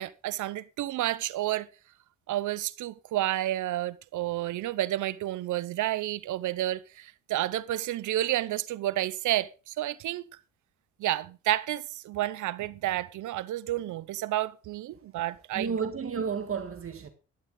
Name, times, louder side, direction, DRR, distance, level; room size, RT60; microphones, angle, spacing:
voice 1, 0.0-1.7 2.3-10.2 11.0-15.7, right 14 dB, 75° right, 0.8 m, -30 dB
voice 2, 15.5-17.1, right 6 dB, 45° right, 1.8 m, -32 dB
12.5 x 11.0 x 3.9 m
cardioid pair, 90°, 30 cm